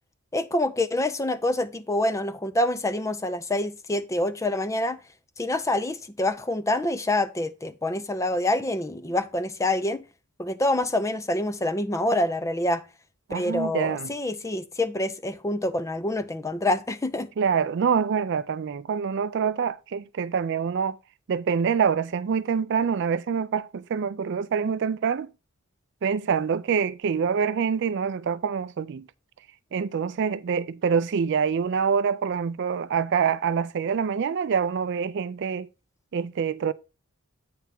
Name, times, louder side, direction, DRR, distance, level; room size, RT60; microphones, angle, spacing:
voice 1, 0.3-5.0 5.4-10.0 10.4-12.8 13.3-17.3, left 1 dB, 15° left, 0.4 m, -26 dB
voice 2, 13.3-14.1 17.4-21.0 21.3-25.3 26.0-29.1 29.7-35.7 36.1-36.7, right 6 dB, 55° right, 0.4 m, -25 dB
8.6 x 3.5 x 5.8 m
head